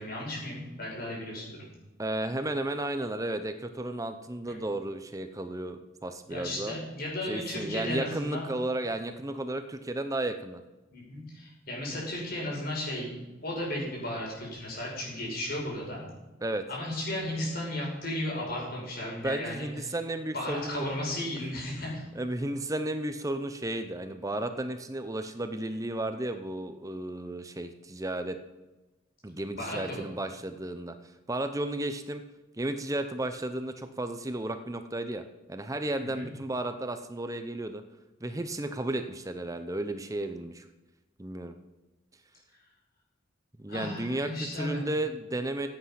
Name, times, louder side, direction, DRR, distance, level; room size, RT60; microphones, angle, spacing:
voice 1, 0.0-1.6 4.5-4.6 6.3-8.6 10.9-16.0 16.7-19.7 20.3-22.0 29.6-30.0 36.0-36.3 43.7-44.8, left 1 dB, 50° left, -3 dB, 5.6 m, -35 dB
voice 2, 2.0-6.7 7.3-10.6 16.4-16.7 19.2-20.9 22.1-28.4 29.2-30.9 31.3-32.2 32.6-35.2 35.5-37.8 38.2-40.6 41.2-41.5 43.6-45.7, right 1 dB, 15° right, 9 dB, 0.7 m, -33 dB
15.5 x 8.4 x 5.8 m, 1.1 s
head